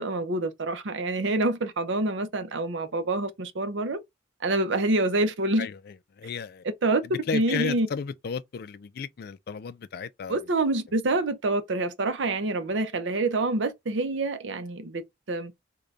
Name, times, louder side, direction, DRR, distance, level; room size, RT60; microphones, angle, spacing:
voice 1, 0.0-4.0 4.4-5.7 6.8-7.0 7.3-7.9 10.3-15.5, right 2 dB, 75° right, 0.6 m, -27 dB
voice 2, 5.6-6.6 7.0-10.4, left 6 dB, 55° left, 0.3 m, -34 dB
3.8 x 2.2 x 3.2 m
head